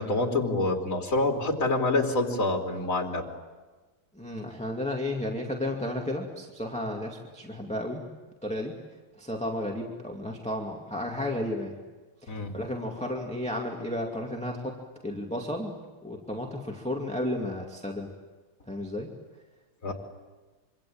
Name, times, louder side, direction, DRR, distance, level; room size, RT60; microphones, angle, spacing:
voice 1, 0.0-3.2 12.3-12.5 19.8-19.9, left 2 dB, 35° left, 2 dB, 3.5 m, -26 dB
voice 2, 4.1-8.0 8.4-8.7 9.2-11.7 12.2-14.7 15.0-18.1 18.7-19.1 19.9-20.0, left 1 dB, 5° left, 0 dB, 2.2 m, -33 dB
26.0 x 25.5 x 8.8 m, 1.3 s
omnidirectional pair, 2.4 m